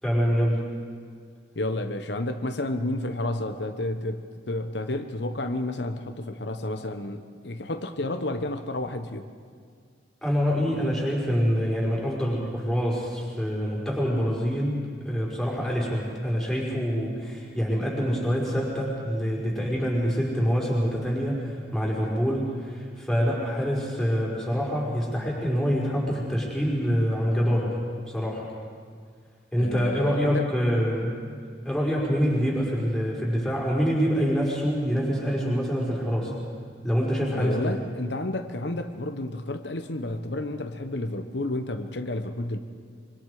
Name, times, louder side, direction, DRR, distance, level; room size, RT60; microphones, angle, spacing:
voice 1, 0.0-0.6 10.2-27.8 28.1-28.5 29.5-31.1 31.6-36.3 36.8-37.8, equal, ahead, -5 dB, 5.2 m, -26 dB
voice 2, 1.5-9.2 29.6-30.5 37.3-42.6, left 1 dB, 70° left, 7 dB, 1.1 m, -31 dB
25.5 x 25.5 x 5.0 m, 2.1 s
head